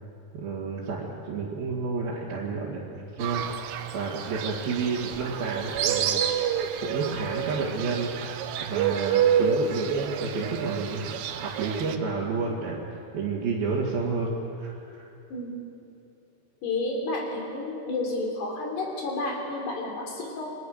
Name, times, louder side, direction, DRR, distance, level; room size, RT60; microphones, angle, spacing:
voice 1, 0.3-3.5 3.9-6.4 6.8-8.1 8.6-15.1, right 4 dB, 55° right, -6 dB, 3.9 m, -30 dB
Fowl, 3.2-12.0, right 8 dB, 75° right, 2.1 m, -28 dB
voice 2, 15.3-15.7 16.6-20.5, left 2 dB, 60° left, 0 dB, 5.5 m, -31 dB
29.0 x 21.5 x 6.6 m, 2.7 s
omnidirectional pair, 5.5 m